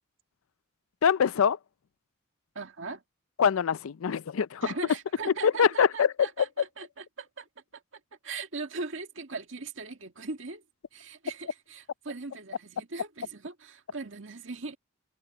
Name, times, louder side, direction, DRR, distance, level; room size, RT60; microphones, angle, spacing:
voice 1, 1.0-1.6 3.4-4.7 5.4-6.1, left 7 dB, 85° left, 0.4 m, -24 dB
voice 2, 2.6-3.0 4.6-7.5 7.7-10.6 10.9-14.8, right 3 dB, 70° right, 2.0 m, -39 dB
head